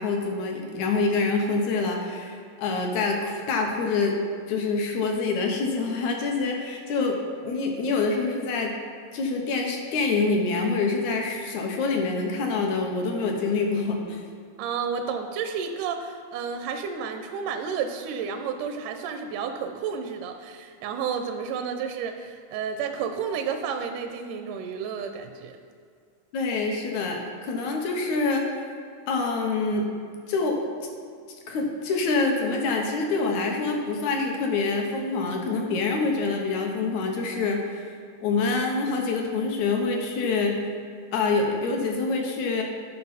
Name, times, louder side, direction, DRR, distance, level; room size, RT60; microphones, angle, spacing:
voice 1, 0.0-4.2 4.5-8.8 9.1-14.2 26.3-28.4 29.1-29.9 30.3-30.6 31.5-37.9 38.2-40.6 41.1-42.6, left 3 dB, 70° left, 2 dB, 2.0 m, -26 dB
voice 2, 14.6-25.6, right 6 dB, 80° right, 6 dB, 1.9 m, -31 dB
11.5 x 5.4 x 4.1 m, 2.3 s
omnidirectional pair, 3.9 m